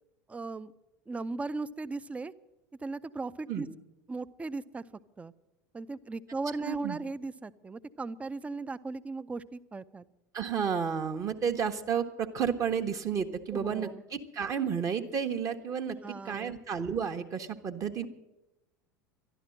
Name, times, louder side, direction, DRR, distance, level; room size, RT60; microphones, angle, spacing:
voice 1, 0.3-0.7 1.1-2.3 2.8-3.7 4.1-4.8 5.2-5.3 5.7-10.1 13.5-14.0 16.0-16.6, right 3 dB, 15° right, 15 dB, 0.5 m, -37 dB
voice 2, 6.6-7.0 10.3-18.1, right 7 dB, 35° right, 5 dB, 1.1 m, -32 dB
12.0 x 12.0 x 7.6 m, 0.95 s
figure-of-eight pair, 80°, 10 cm